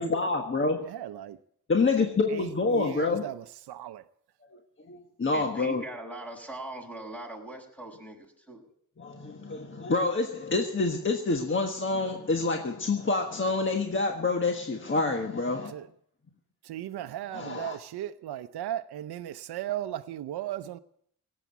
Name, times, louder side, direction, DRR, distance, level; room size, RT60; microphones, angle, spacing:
voice 1, 0.0-0.8 1.7-3.2 4.9-5.8 9.0-15.7 17.3-17.8, left 3 dB, 30° left, 1.4 m, -27 dB
voice 2, 0.8-1.4 2.3-4.0 15.7-15.9 16.6-20.8, right 12 dB, 75° right, 0.7 m, -36 dB
voice 3, 5.3-8.6, right 1 dB, 5° left, 5.8 m, -41 dB
18.0 x 8.5 x 8.2 m
cardioid pair, 100°, 39 cm